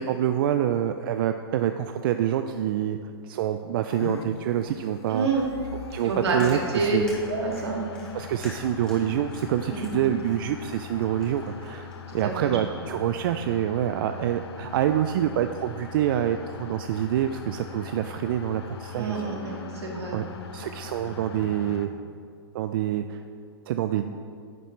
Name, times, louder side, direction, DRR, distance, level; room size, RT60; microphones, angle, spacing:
voice 1, 0.0-5.3 5.9-7.0 8.1-11.9 12.1-19.1 19.5-19.6 20.1-20.2 20.5-21.9 22.5-23.2 23.7-24.2, right 10 dB, 55° right, 8 dB, 0.4 m, -26 dB
sound 1, 3.9-21.9, left 7 dB, 80° left, 0.7 m, -41 dB
voice 2, 5.1-5.5 6.0-7.0 7.3-7.9 9.7-10.0 12.1-12.8 18.9-20.2 21.0-21.1, right 3 dB, 80° right, -2 dB, 2.0 m, -28 dB
Chewing mastication, 6.2-12.4, equal, 5° left, 1.9 m, -46 dB
10.0 x 6.7 x 3.2 m, 2.3 s
hypercardioid pair, 135°, 13 cm